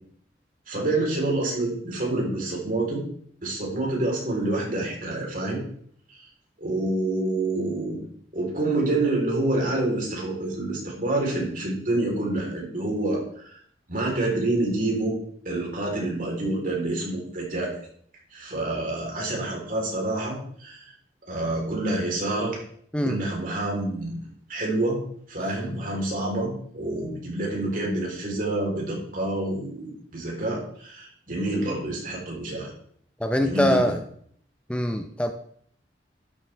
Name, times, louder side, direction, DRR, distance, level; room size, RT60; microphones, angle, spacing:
voice 1, 0.7-3.0 3.4-5.6 6.1-6.3 6.6-8.0 8.3-13.6 13.9-15.2 15.5-17.7 18.3-20.8 21.3-22.6 23.0-24.2 24.5-25.0 25.3-32.7 33.4-33.9, right 2 dB, 50° right, -2 dB, 3.7 m, -27 dB
voice 2, 33.2-34.0 34.7-35.3, equal, 5° left, 6 dB, 0.5 m, -23 dB
12.0 x 7.5 x 3.4 m, 0.62 s
head